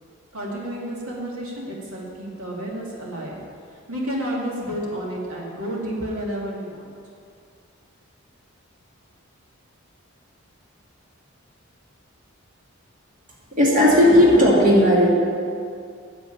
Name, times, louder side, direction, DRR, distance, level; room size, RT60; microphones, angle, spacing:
voice 1, 0.3-3.4 3.9-6.9, equal, 85° right, -3 dB, 2.3 m, -30 dB
voice 2, 13.6-15.1, left 1 dB, 40° right, -4 dB, 2.1 m, -15 dB
9.1 x 7.6 x 8.4 m, 2.4 s
head